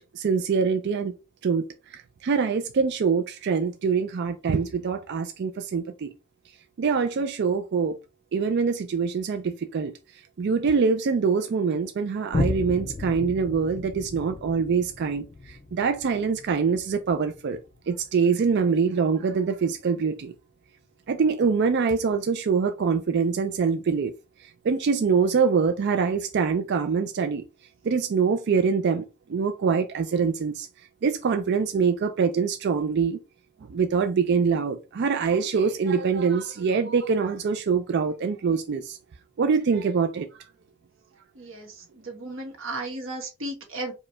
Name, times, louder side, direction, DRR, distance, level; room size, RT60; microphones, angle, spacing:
voice 1, 0.1-1.1 1.4-6.1 6.8-8.0 8.3-9.9 10.4-17.6 17.9-20.3 21.1-24.1 24.4-27.4 27.8-30.7 31.0-33.2 33.6-39.0 39.4-40.3, right 5 dB, 55° right, 0.4 m, -24 dB
Boom, 12.3-19.2 19.8-19.9, left 3 dB, 25° left, 0.4 m, -35 dB
voice 2, 41.3-43.9, right 2 dB, 75° right, 1.4 m, -35 dB
4.9 x 2.2 x 3.2 m
head